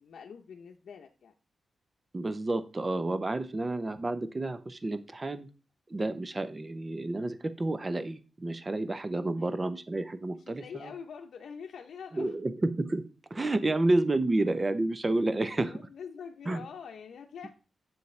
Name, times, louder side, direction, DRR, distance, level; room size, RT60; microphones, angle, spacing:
voice 1, 0.0-1.3 9.3-9.5 10.3-12.4 15.5-17.5, left 6 dB, 75° left, 2 dB, 0.7 m, -45 dB
voice 2, 2.1-5.5 5.9-10.9 12.1-13.0 13.3-15.8 16.5-16.6, right 2 dB, 20° right, 11 dB, 0.7 m, -30 dB
8.0 x 6.9 x 3.2 m, 0.33 s
wide cardioid pair, 160°, 0 cm